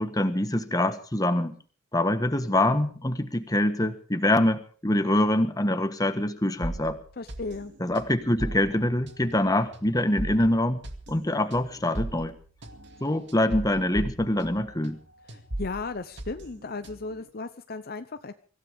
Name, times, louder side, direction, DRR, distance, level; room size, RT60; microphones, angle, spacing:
voice 1, 0.0-1.6 1.9-7.0 7.8-10.8 11.1-12.3 13.0-15.0, left 1 dB, 15° left, 9 dB, 1.4 m, -25 dB
sound 1, 6.6-15.0 15.3-17.2, right 1 dB, 55° right, 2.3 m, -38 dB
voice 2, 7.2-7.7 15.3-18.3, left 3 dB, 45° left, 10 dB, 0.8 m, -35 dB
24.5 x 16.0 x 3.6 m, 0.40 s
head